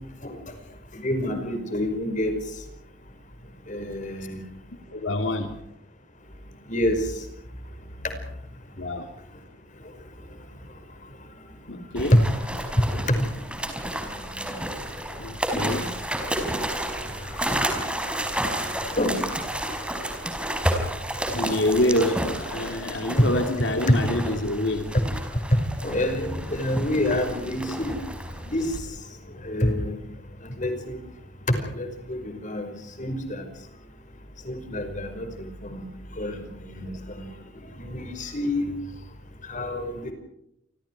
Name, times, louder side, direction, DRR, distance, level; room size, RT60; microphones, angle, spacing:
voice 1, 1.0-2.3 3.7-4.4 6.7-7.0 12.1-12.3 13.1-13.2 19.0-19.3 25.5-28.0 28.5-28.7 29.4-29.9 30.6-31.0 31.5-32.7 33.0-33.5 34.5-35.9 36.2-36.4 36.7-36.9 37.2-37.3 37.8-38.7 39.5-40.1, left 1 dB, 40° left, 7 dB, 5.4 m, -26 dB
voice 2, 4.9-5.6 8.8-9.1 11.7-12.3 15.2-16.0 21.3-24.9, left 1 dB, 75° left, 5 dB, 2.9 m, -26 dB
sound 1, 12.0-28.8, right 1 dB, 5° right, 5.0 m, -31 dB
29.5 x 24.5 x 4.8 m, 0.77 s
head